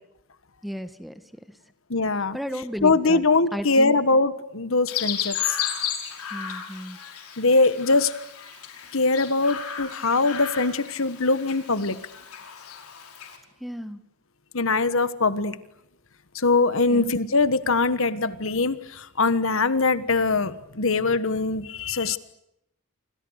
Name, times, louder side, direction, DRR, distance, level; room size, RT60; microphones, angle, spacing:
voice 1, 0.6-1.1 2.3-3.2 3.5-4.0 6.3-7.0 13.6-14.0 16.9-17.1, equal, ahead, 10 dB, 1.4 m, -33 dB
voice 2, 1.9-2.4 2.8-5.6 7.4-8.1 8.9-12.0 14.5-15.6 16.3-22.2, left 3 dB, 60° left, 14 dB, 1.4 m, -22 dB
Chirp tweet, 4.9-13.4, left 9 dB, 80° left, 5.2 m, -34 dB
29.5 x 25.5 x 6.5 m, 0.80 s
head